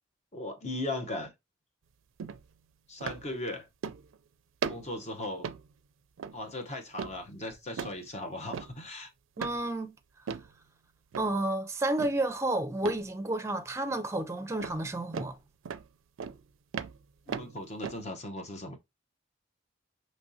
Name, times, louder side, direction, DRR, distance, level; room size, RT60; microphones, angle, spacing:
voice 1, 0.3-1.3 2.9-3.7 4.6-5.5 6.3-9.1 17.3-18.8, left 2 dB, 35° left, 0.9 m, -38 dB
sound 1, 2.2-2.4 3.0-3.3 3.8-4.2 4.6-5.0 5.4-5.7 6.2-6.4 7.0-7.2 7.8-8.0 8.5-8.7 9.4-9.6 10.3-10.5 11.1-11.4 12.0-12.2 12.8-13.1 14.6-14.8 15.1-15.3 15.6-15.9 16.2-16.4 16.7-18.0, right 6 dB, 80° right, 0.4 m, -37 dB
voice 2, 9.4-9.9 11.2-15.4, right 2 dB, 15° right, 0.5 m, -31 dB
5.2 x 3.1 x 2.7 m
head